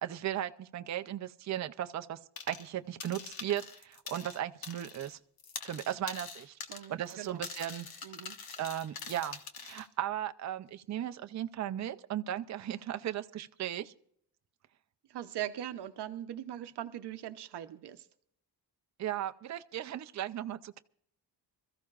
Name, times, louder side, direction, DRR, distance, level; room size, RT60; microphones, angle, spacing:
voice 1, 0.0-2.2 2.5-5.2 5.6-6.6 6.9-7.9 8.6-13.9 19.0-20.8, right 11 dB, 40° right, 9 dB, 0.5 m, -36 dB
sound 1, 2.4-2.7 3.0-5.1 5.4-9.9, left 5 dB, 60° left, 1.4 m, -44 dB
voice 2, 6.7-7.4 8.0-8.4 15.1-18.1, right 11 dB, 70° right, 9 dB, 0.8 m, -41 dB
26.0 x 14.0 x 2.4 m, 0.67 s
wide cardioid pair, 170°, 41 cm